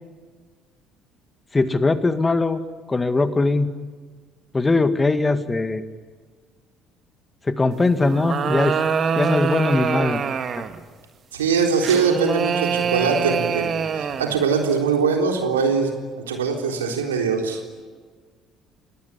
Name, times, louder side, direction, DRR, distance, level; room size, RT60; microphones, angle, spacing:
voice 1, 1.5-2.6 2.9-3.7 4.5-5.8 7.5-8.8 9.2-10.2, left 3 dB, 20° left, 11 dB, 2.0 m, -20 dB
sound 1, 8.0-10.8 11.8-14.4, right 7 dB, 45° right, 1.9 m, -24 dB
voice 2, 11.3-13.7 13.9-15.9 16.3-17.7, right 5 dB, 85° right, 3 dB, 3.8 m, -22 dB
30.0 x 19.5 x 9.9 m, 1.5 s
hypercardioid pair, 55°, 0 cm